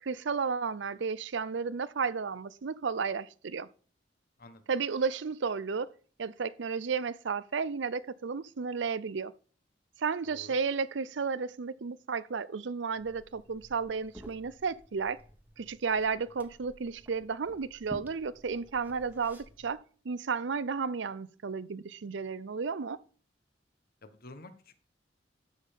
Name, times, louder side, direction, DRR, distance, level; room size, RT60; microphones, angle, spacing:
voice 1, 0.0-3.7 4.7-5.9 6.2-9.3 10.0-15.2 15.6-23.0, right 5 dB, 75° right, 0.6 m, -33 dB
voice 2, 10.2-10.6 24.0-24.7, left 2 dB, 55° left, 1.3 m, -50 dB
Liquid, 13.0-19.7, equal, 10° right, 1.4 m, -53 dB
12.5 x 5.7 x 5.1 m
head